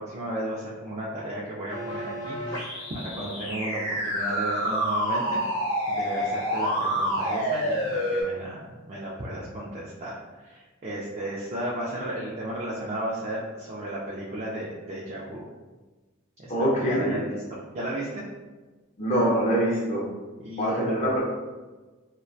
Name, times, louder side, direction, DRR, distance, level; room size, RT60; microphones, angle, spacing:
voice 1, 0.0-5.4 5.9-10.1 10.4-15.4 16.4-16.5 16.8-18.2 20.4-21.1, right 1 dB, 30° right, -6 dB, 0.3 m, -34 dB
sound 1, 1.7-8.2, equal, 75° left, 0.8 m, -28 dB
voice 2, 16.5-17.2 19.0-20.1 20.6-21.2, equal, 35° left, -4 dB, 0.5 m, -24 dB
2.2 x 2.1 x 2.6 m, 1.3 s
head